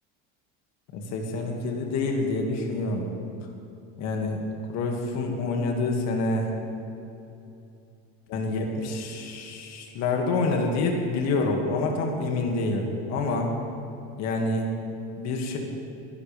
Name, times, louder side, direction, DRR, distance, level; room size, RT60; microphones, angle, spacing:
voice 1, 0.9-3.1 4.0-4.4 4.7-6.5 8.3-13.6 14.2-14.7 15.2-15.6, left 3 dB, 55° left, 1 dB, 2.2 m, -27 dB
22.5 x 11.5 x 3.5 m, 2.7 s
supercardioid pair, 130°, 31 cm